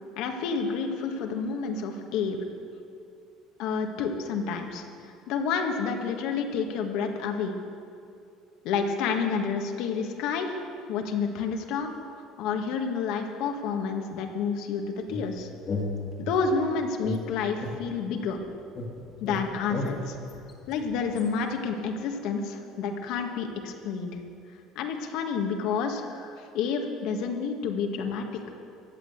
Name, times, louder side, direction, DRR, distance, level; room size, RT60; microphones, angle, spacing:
voice 1, 0.2-2.4 3.6-4.8 5.3-7.5 8.6-10.6 10.9-11.9 12.4-15.5 16.2-18.4 19.2-20.2 20.7-24.1 24.7-28.3, left 5 dB, 70° left, 4 dB, 1.6 m, -29 dB
sound 1, 15.1-16.6 17.0-18.4 18.8-21.3, left 2 dB, 35° left, 1.9 m, -35 dB
14.5 x 8.6 x 8.0 m, 2.6 s
cardioid pair, 115°, 0 cm